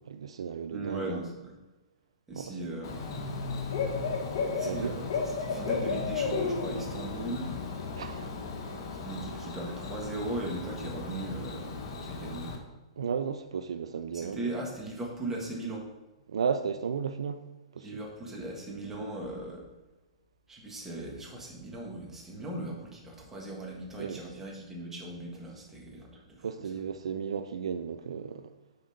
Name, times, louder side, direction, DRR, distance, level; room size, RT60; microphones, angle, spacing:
voice 1, 0.0-1.2 2.3-2.5 4.7-5.0 8.0-8.3 13.0-14.5 16.3-17.4 17.7-18.0 24.0-24.2 26.4-28.5, right 6 dB, 75° right, 0.4 m, -34 dB
voice 2, 0.7-1.6 2.3-3.1 4.6-5.1 5.4-7.5 9.0-12.6 14.1-15.9 17.8-19.7 20.5-26.7, right 2 dB, 10° right, 1.8 m, -38 dB
Bird / Cricket, 2.8-12.6, left 4 dB, 55° left, 1.3 m, -34 dB
6.6 x 4.1 x 5.0 m
hypercardioid pair, 125°, 3 cm